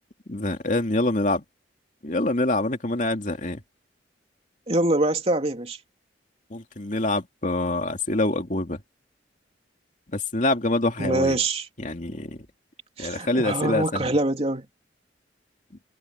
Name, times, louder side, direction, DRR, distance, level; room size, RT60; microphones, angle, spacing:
voice 1, 0.3-1.4 2.0-3.6 6.5-8.8 10.1-11.4 11.8-12.4 13.0-14.1, left 2 dB, 45° left, 2.6 m, -25 dB
voice 2, 4.7-5.8 11.0-11.7 13.0-14.6, right 2 dB, 35° right, 3.0 m, -24 dB
head